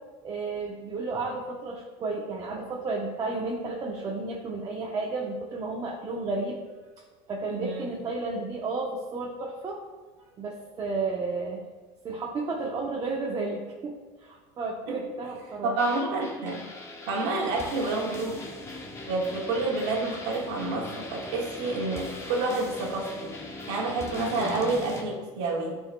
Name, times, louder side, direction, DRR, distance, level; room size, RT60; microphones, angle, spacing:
voice 1, 0.2-6.6 7.3-9.8 10.2-11.6 12.0-15.8 24.4-24.5, right 3 dB, 30° right, -1 dB, 0.9 m, -32 dB
voice 2, 7.5-8.0 15.6-16.6 17.1-18.5 19.1-23.3 23.7-25.8, right 3 dB, 80° right, -2 dB, 1.7 m, -29 dB
sound 1, 15.8-25.0, left 2 dB, 20° left, 1.0 m, -40 dB
13.0 x 4.5 x 2.3 m, 1.3 s
supercardioid pair, 135°, 14 cm